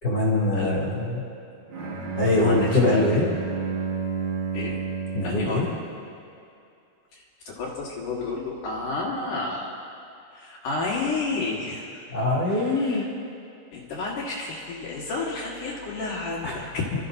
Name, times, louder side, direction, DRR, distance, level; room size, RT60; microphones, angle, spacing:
voice 1, 0.0-1.2 2.2-3.2 5.1-5.6 12.1-13.1 16.4-16.5, left 2 dB, 25° left, -7 dB, 2.4 m, -23 dB
voice 2, 0.5-0.8 2.3-3.4 4.5-4.8 5.2-5.8 7.1-9.7 10.3-12.0 12.5-13.1 13.7-16.9, left 3 dB, 60° left, -3 dB, 2.5 m, -31 dB
Bowed string instrument, 1.7-5.8, right 4 dB, 40° right, 2.4 m, -31 dB
27.5 x 13.5 x 2.7 m, 2.5 s
omnidirectional pair, 5.0 m